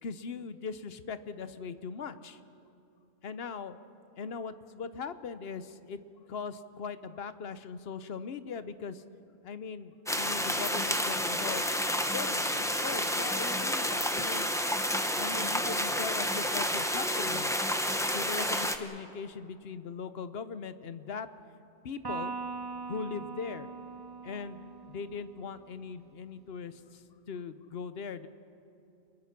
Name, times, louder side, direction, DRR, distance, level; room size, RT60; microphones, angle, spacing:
voice 1, 0.0-2.4 3.2-3.8 4.2-6.0 6.3-9.0 9.4-11.7 12.0-14.5 15.1-17.5 18.1-21.3 21.8-22.3 22.9-23.7 24.2-28.3, left 5 dB, 60° left, 12 dB, 1.1 m, -40 dB
sound 1, 10.1-18.8, equal, 5° left, 0.9 m, -30 dB
Electric guitar, 22.0-25.6, right 4 dB, 20° right, 1.0 m, -41 dB
28.5 x 21.5 x 5.9 m, 2.6 s
omnidirectional pair, 1.2 m